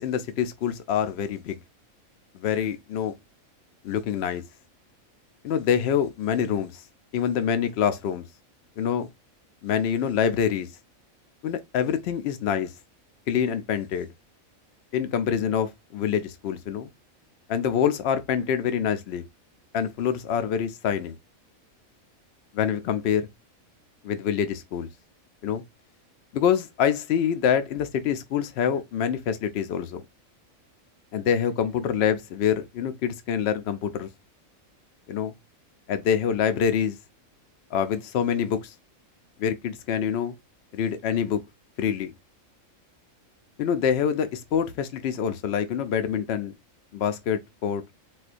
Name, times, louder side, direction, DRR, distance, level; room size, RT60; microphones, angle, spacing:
voice 1, 0.0-1.6 2.3-3.1 3.8-4.4 5.4-6.8 7.1-8.3 8.8-9.1 9.6-10.7 11.4-12.7 13.3-14.1 14.9-16.9 17.5-19.2 19.7-21.2 22.5-23.3 24.0-24.9 25.4-25.6 26.3-30.0 31.1-34.1 35.1-35.3 35.9-37.0 37.7-38.7 39.4-40.4 40.7-41.4 41.8-42.1 43.6-46.5 46.9-47.9, left 8 dB, 65° left, 0.7 m, -26 dB
4.2 x 2.2 x 2.5 m
omnidirectional pair, 1.4 m